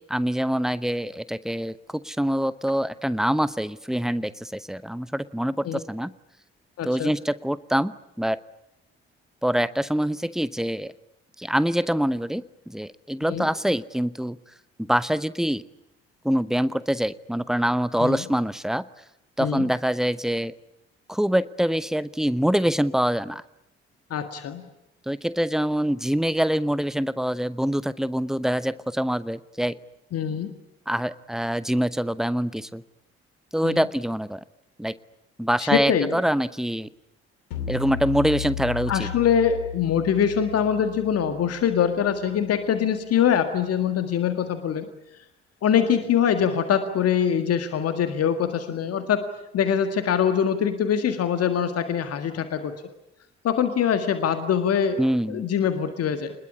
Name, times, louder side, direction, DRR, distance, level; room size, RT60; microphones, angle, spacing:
voice 1, 0.1-1.7 2.0-6.1 6.8-8.4 9.4-10.9 11.4-14.4 14.8-15.6 16.2-18.8 19.4-20.5 21.1-23.4 25.1-29.8 30.9-32.8 33.5-34.4 34.8-34.9 35.4-36.9 37.7-39.1 55.0-55.5, equal, ahead, 17 dB, 1.0 m, -25 dB
voice 2, 6.8-7.1 13.3-13.5 18.0-18.2 19.4-19.7 24.1-24.7 30.1-30.5 33.6-33.9 35.6-36.2 38.9-44.9 45.6-49.3 49.5-52.7 53.4-55.0 55.3-56.3, left 8 dB, 50° left, 9 dB, 1.8 m, -23 dB
sound 1, 37.5-42.8, left 7 dB, 70° left, 2.5 m, -35 dB
26.5 x 21.0 x 9.9 m, 0.88 s
figure-of-eight pair, 40°, 31 cm